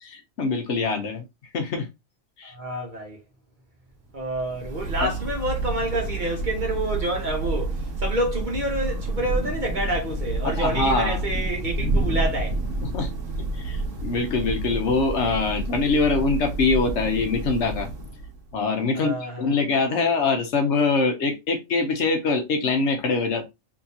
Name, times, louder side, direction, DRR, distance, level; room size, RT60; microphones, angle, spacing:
voice 1, 0.0-1.2 1.5-1.9 2.4-2.5 5.0-5.1 10.4-11.2 12.8-13.1 13.5-17.9 18.5-23.5, left 4 dB, 65° left, 1.0 m, -24 dB
voice 2, 2.5-3.2 4.1-12.6 18.9-19.5, right 1 dB, 40° right, 1.0 m, -28 dB
Thunder / Rain, 4.2-18.5, right 2 dB, 75° right, 1.3 m, -29 dB
3.6 x 2.8 x 2.7 m
omnidirectional pair, 1.4 m